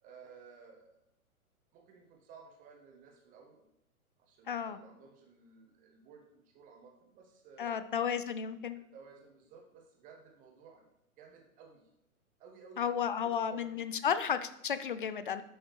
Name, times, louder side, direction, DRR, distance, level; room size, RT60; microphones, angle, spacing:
voice 1, 0.0-1.0 1.7-3.6 4.2-7.8 8.7-10.9 11.2-11.8 12.4-13.9, right 5 dB, 20° right, 2 dB, 1.3 m, -56 dB
voice 2, 4.5-4.8 7.6-8.8 12.8-15.4, left 7 dB, 40° left, 12 dB, 0.5 m, -33 dB
11.5 x 6.2 x 3.2 m, 0.80 s
figure-of-eight pair, 120°, 44 cm